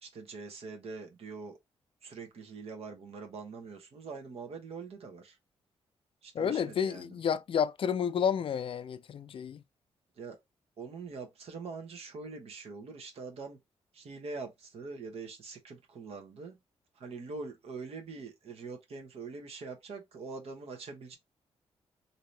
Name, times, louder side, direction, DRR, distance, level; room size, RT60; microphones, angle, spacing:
voice 1, 0.0-1.6 2.0-5.4 6.2-7.1 10.2-10.4 10.8-13.6 13.9-16.6 17.0-21.2, right 4 dB, 65° right, 1.0 m, -43 dB
voice 2, 6.3-9.6, left 7 dB, 50° left, 0.4 m, -30 dB
2.8 x 2.7 x 3.2 m
cardioid pair, 65°, 11 cm